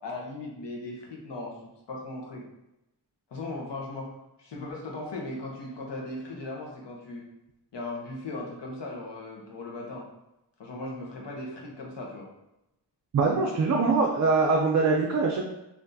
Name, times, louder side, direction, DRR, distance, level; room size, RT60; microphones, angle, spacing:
voice 1, 0.0-1.5 1.9-2.4 3.3-4.1 4.4-7.2 7.7-10.1 10.6-12.3, left 2 dB, 70° left, -2 dB, 0.9 m, -37 dB
voice 2, 13.1-15.4, right 4 dB, 45° right, 0 dB, 0.4 m, -23 dB
3.5 x 2.6 x 2.6 m, 0.89 s
wide cardioid pair, 90°, 44 cm